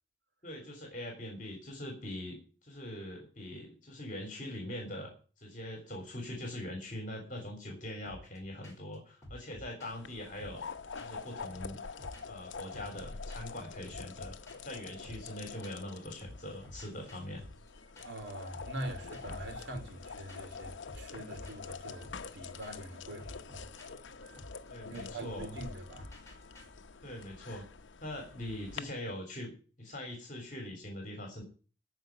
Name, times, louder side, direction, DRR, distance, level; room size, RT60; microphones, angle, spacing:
voice 1, 0.4-5.1 5.4-10.7 11.0-11.9 12.3-14.4 14.6-17.4 24.7-25.6 27.0-27.7 28.0-29.5 29.8-31.4, left 1 dB, 45° left, 3.4 m, -42 dB
sound 1, 8.1-8.4 8.6-9.0 9.2-11.3 11.5-13.0 13.3-13.6 13.9-15.9 16.2-26.6, left 1 dB, 15° left, 4.7 m, -53 dB
sound 2, 9.9-28.8, left 5 dB, 85° left, 0.8 m, -46 dB
voice 2, 18.0-23.7 24.9-26.2, right 1 dB, 75° right, 3.4 m, -44 dB
13.5 x 5.0 x 9.1 m
head